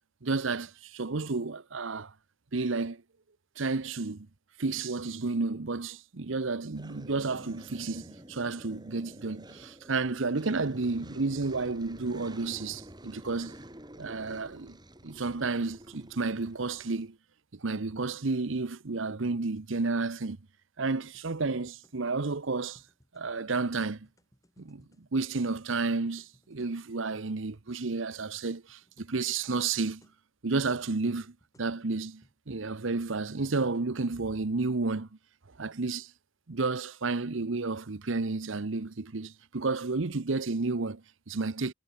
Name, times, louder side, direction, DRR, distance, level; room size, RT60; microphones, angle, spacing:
voice 1, 0.2-2.1 2.5-3.0 3.6-4.3 4.6-13.5 14.0-14.8 15.0-17.2 17.5-20.4 20.8-22.8 23.1-24.1 24.6-24.8 25.1-30.0 30.4-35.1 35.6-36.1 36.5-41.7, right 3 dB, 65° right, 0.9 m, -31 dB
sound 1, 6.7-17.1, right 1 dB, 20° right, 6.1 m, -49 dB
sound 2, 21.1-29.2 29.4-29.5 29.7-30.2 30.9-32.4, equal, 15° left, 4.2 m, -64 dB
head